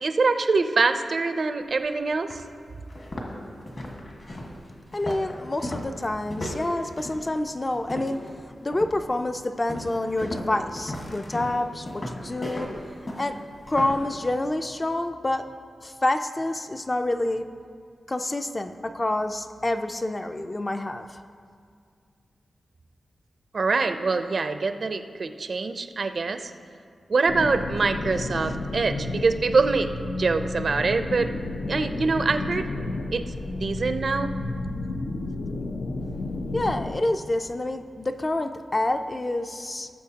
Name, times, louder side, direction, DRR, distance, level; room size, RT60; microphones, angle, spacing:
voice 1, 0.0-2.4 23.5-26.5 27.1-31.3 31.7-32.7 33.1-33.3 33.6-34.3, right 4 dB, 55° right, 9 dB, 0.5 m, -24 dB
sound 1, 1.7-1.8 2.3-2.4 2.9-8.3 8.7-9.1 9.7-14.1, left 1 dB, 45° left, 1.6 m, -36 dB
voice 2, 4.9-8.2 8.6-12.7 13.2-13.4 13.7-15.4 15.8-17.4 18.1-21.2 36.5-39.9, left 1 dB, 25° left, 7 dB, 0.4 m, -27 dB
sound 2, 27.3-37.0, left 2 dB, 85° left, 0.7 m, -32 dB
17.5 x 7.0 x 2.8 m, 2.2 s
wide cardioid pair, 100°, 0 cm